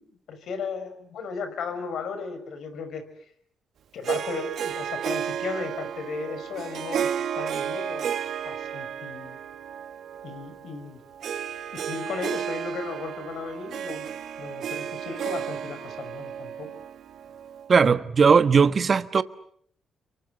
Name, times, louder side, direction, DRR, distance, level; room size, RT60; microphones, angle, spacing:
voice 1, 0.0-3.0 3.9-7.1 7.4-9.4 10.2-11.0 11.7-14.0 14.4-16.7, left 5 dB, 70° left, 6.1 m, -35 dB
Harp, 4.0-17.7, right 8 dB, 70° right, 1.9 m, -33 dB
voice 2, 17.7-19.2, right 5 dB, 45° right, 1.4 m, -18 dB
29.5 x 24.0 x 8.0 m
supercardioid pair, 60°, 0 cm